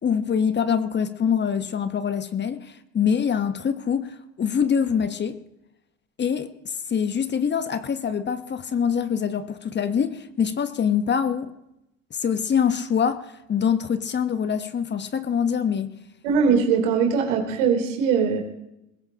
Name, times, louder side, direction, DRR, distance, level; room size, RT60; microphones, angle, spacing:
voice 1, 0.0-5.4 6.2-11.5 12.1-15.9, left 7 dB, 30° left, 1.2 m, -24 dB
voice 2, 16.2-18.4, right 6 dB, 70° right, 3.5 m, -21 dB
22.0 x 21.0 x 2.9 m
hypercardioid pair, 70°, 38 cm